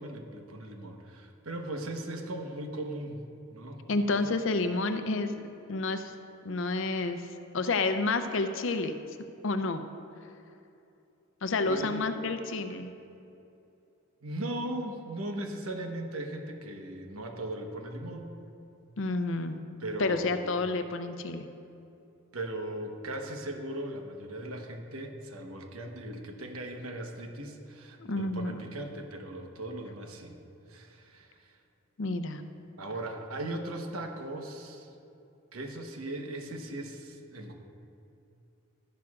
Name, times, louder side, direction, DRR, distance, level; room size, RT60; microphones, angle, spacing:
voice 1, 0.0-3.8 11.6-12.0 14.2-18.3 19.8-20.4 22.3-30.4 30.7-31.6 32.8-34.9 35.5-37.5, right 1 dB, 85° right, 3 dB, 1.1 m, -38 dB
voice 2, 3.9-5.3 5.7-6.1 6.4-7.2 7.5-8.9 9.4-9.8 11.4-12.9 19.0-19.6 20.0-21.5 28.1-28.6 32.0-32.4, left 3 dB, 60° left, 8 dB, 0.5 m, -29 dB
12.0 x 10.5 x 2.4 m, 2.7 s
head